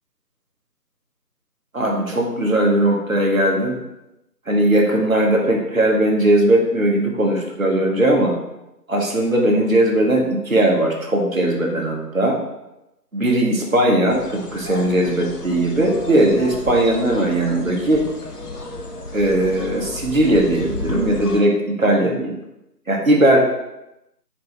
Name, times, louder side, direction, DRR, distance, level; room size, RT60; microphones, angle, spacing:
voice 1, 1.7-3.8 4.5-8.3 8.9-12.4 13.1-18.1 19.1-22.4 22.9-23.4, right 1 dB, 55° right, 0 dB, 0.8 m, -18 dB
sound 1, 14.1-21.4, left 2 dB, 70° left, 0.7 m, -33 dB
4.4 x 2.6 x 3.1 m, 0.92 s
figure-of-eight pair, 180°, 49 cm